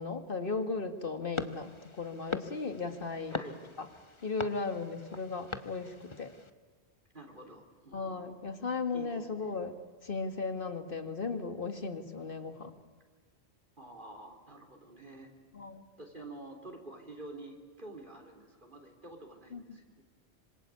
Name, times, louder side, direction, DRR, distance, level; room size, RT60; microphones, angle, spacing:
voice 1, 0.0-3.3 3.8-3.9 4.2-6.3 7.9-9.8 10.0-12.8 15.5-15.8 19.5-19.8, left 4 dB, 55° left, 8 dB, 2.2 m, -36 dB
sound 1, 1.3-6.5, left 4 dB, 25° left, 1.2 m, -42 dB
voice 2, 7.1-8.3 8.9-9.4 13.8-15.3 16.0-20.0, right 2 dB, 50° right, 2 dB, 3.9 m, -48 dB
26.0 x 26.0 x 8.5 m, 1.4 s
omnidirectional pair, 1.1 m